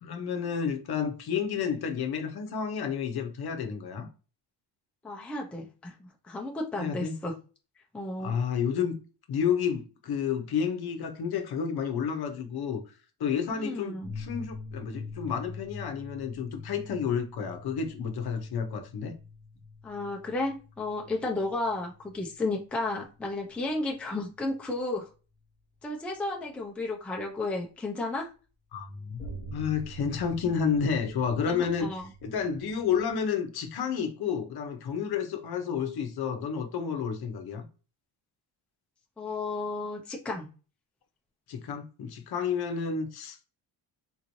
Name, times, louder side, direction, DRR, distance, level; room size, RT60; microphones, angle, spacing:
voice 1, 0.0-4.1 6.8-7.1 8.2-9.0 9.3-12.8 13.2-19.2 28.7-29.2 29.5-31.9 32.2-37.6 41.5-43.4, left 7 dB, 60° left, 0.8 m, -30 dB
voice 2, 5.0-7.4 7.9-8.4 13.5-14.1 19.8-25.1 25.8-28.3 31.5-32.1 39.2-40.5, left 2 dB, 5° left, 0.4 m, -33 dB
sound 1, 14.0-23.3 24.3-24.4 29.2-33.1, left 2 dB, 25° left, 0.9 m, -44 dB
3.8 x 3.0 x 2.6 m
cardioid pair, 155°, 44 cm